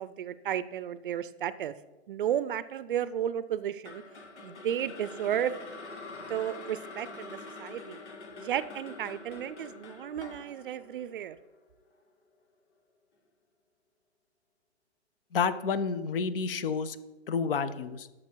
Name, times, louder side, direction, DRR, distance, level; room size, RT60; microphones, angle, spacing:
voice 1, 0.0-1.7 2.1-4.0 4.4-5.6 6.3-8.0 8.4-11.4, right 10 dB, 50° right, 16 dB, 0.5 m, -33 dB
sound 1, 3.8-12.0, left 3 dB, 90° left, 1.7 m, -45 dB
voice 2, 15.3-17.0 17.3-18.1, left 5 dB, 55° left, 14 dB, 0.8 m, -29 dB
12.0 x 6.5 x 4.6 m, 1.1 s
hypercardioid pair, 150°, 33 cm